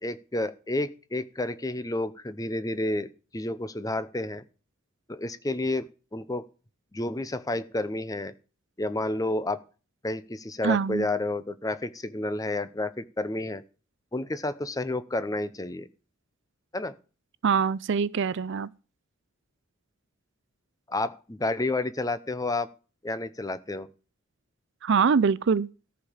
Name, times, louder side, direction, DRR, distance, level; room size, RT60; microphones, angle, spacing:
voice 1, 0.0-3.1 3.3-4.4 5.1-6.4 6.9-8.3 8.8-9.6 10.0-13.6 14.1-15.9 16.7-16.9 20.9-22.7 23.0-23.9, left 2 dB, 15° left, 0.7 m, -30 dB
voice 2, 10.6-11.1 17.4-18.7 24.8-25.7, right 6 dB, 60° right, 0.4 m, -24 dB
14.0 x 5.0 x 7.2 m
head